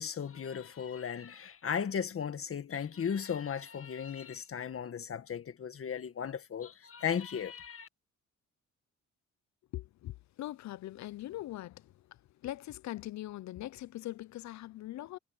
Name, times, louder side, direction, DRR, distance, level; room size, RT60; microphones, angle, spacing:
voice 1, 0.0-7.9, left 7 dB, 45° left, 1.8 m, -36 dB
voice 2, 9.7-11.9 12.4-15.2, left 15 dB, 65° left, 0.6 m, -41 dB
cardioid pair, 90°, 30 cm